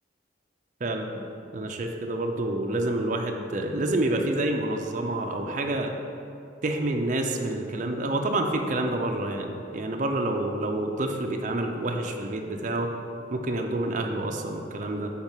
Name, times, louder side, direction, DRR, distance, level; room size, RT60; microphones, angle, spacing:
voice 1, 0.8-1.2 1.5-5.9 6.6-12.9 13.3-15.1, right 2 dB, 45° right, 3 dB, 0.5 m, -28 dB
4.7 x 4.4 x 5.6 m, 2.6 s
head